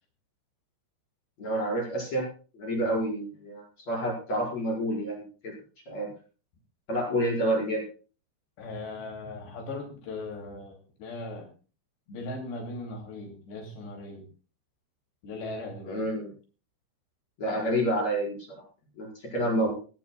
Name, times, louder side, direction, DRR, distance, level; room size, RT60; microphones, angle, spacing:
voice 1, 1.4-2.3 2.5-5.5 5.9-6.1 6.9-7.8 15.9-16.3 17.4-18.4 19.0-19.7, right 1 dB, 35° left, -2 dB, 6.0 m, -28 dB
voice 2, 8.6-11.5 12.1-14.3 15.2-16.0 19.4-19.7, left 2 dB, 65° left, 2 dB, 4.8 m, -39 dB
20.0 x 16.5 x 2.3 m, 0.36 s
omnidirectional pair, 5.5 m